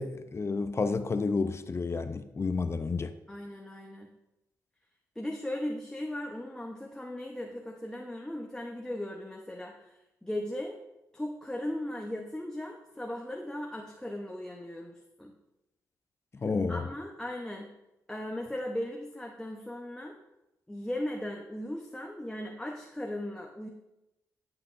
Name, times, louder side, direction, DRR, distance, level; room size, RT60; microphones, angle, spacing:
voice 1, 0.0-3.1 16.3-16.8, left 4 dB, 40° left, 10 dB, 0.5 m, -30 dB
voice 2, 3.3-4.1 5.2-10.8 11.1-15.3 16.7-17.7 18.1-20.2 20.7-23.7, left 1 dB, 10° left, 0 dB, 0.9 m, -37 dB
10.5 x 5.8 x 2.6 m, 0.94 s
supercardioid pair, 50°, 7 cm